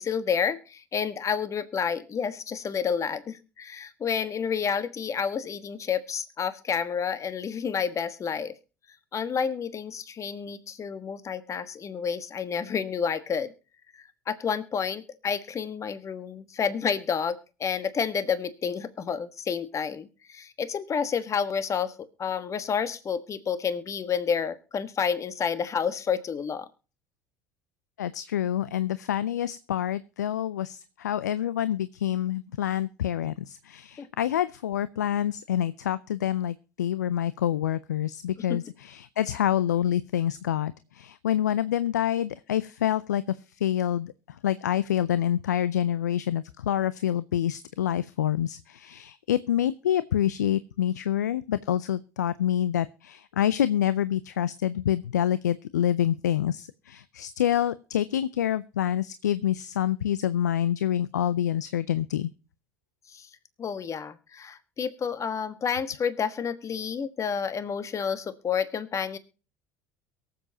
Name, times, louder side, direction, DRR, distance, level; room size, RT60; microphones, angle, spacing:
voice 1, 0.0-8.6 9.1-13.5 13.9-26.7 34.0-34.1 38.5-38.6 63.1-63.3 63.6-69.2, left 6 dB, 35° left, 12 dB, 1.3 m, -30 dB
voice 2, 28.0-43.4 43.6-44.1 44.4-62.3, left 11 dB, 85° left, 16 dB, 0.4 m, -27 dB
23.0 x 7.7 x 2.8 m, 0.35 s
hypercardioid pair, 70°, 9 cm